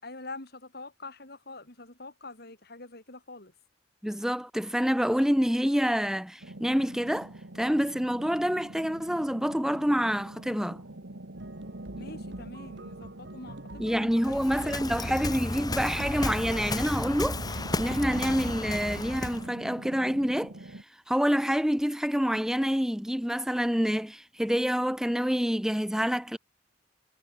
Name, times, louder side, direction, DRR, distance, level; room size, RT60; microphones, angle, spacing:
voice 1, 0.0-3.5 12.0-14.4 14.9-15.0, left 2 dB, 60° left, 4.6 m, -45 dB
voice 2, 4.0-10.8 13.8-17.4 17.8-20.5 21.1-26.4, equal, 5° right, 1.1 m, -27 dB
sound 1, 6.4-20.8, right 1 dB, 85° right, 2.1 m, -44 dB
sound 2, 11.4-16.8, right 1 dB, 70° right, 2.6 m, -47 dB
Waves surf, 14.2-19.5, left 2 dB, 20° left, 1.8 m, -33 dB
head